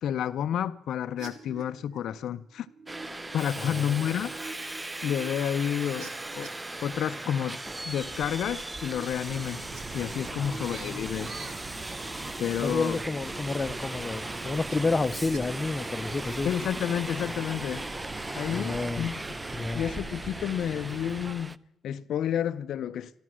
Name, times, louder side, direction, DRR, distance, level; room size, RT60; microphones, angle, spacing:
voice 1, 0.0-2.7 3.3-4.3 5.0-6.1 6.4-6.5 6.8-7.6 7.9-9.6 9.9-11.3 12.4-13.0 16.4-17.9 18.3-19.1 19.7-21.6 21.8-23.1, left 9 dB, 70° left, 0.5 m, -30 dB
sound 1, 1.2-6.9 7.7-9.8 10.1-10.7 11.0-11.5 11.7-12.3 12.6-13.1 14.0-15.4 15.8-16.2, right 3 dB, 90° right, 1.8 m, -49 dB
Subway metro underground, 2.9-21.6, right 2 dB, 15° right, 0.4 m, -38 dB
voice 2, 3.6-4.1 10.4-11.1 12.6-16.5 18.5-19.1 19.5-19.9, left 3 dB, 25° left, 0.6 m, -30 dB
sound 2, 9.3-21.3, right 4 dB, 35° right, 1.0 m, -44 dB
14.5 x 12.5 x 6.1 m
cardioid pair, 90°, 0 cm